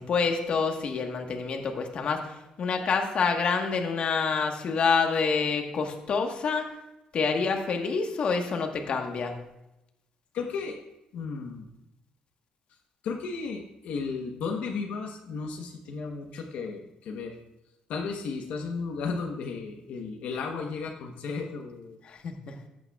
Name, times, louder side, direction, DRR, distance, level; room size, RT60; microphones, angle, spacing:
voice 1, 0.0-6.7 7.1-9.3 22.0-22.5, left 5 dB, 50° left, 4 dB, 1.3 m, -27 dB
voice 2, 10.3-10.8 11.1-11.7 13.0-17.4 17.9-22.0, left 4 dB, 75° left, 2 dB, 1.0 m, -34 dB
14.0 x 8.8 x 2.4 m, 0.92 s
cardioid pair, 125°, 2 cm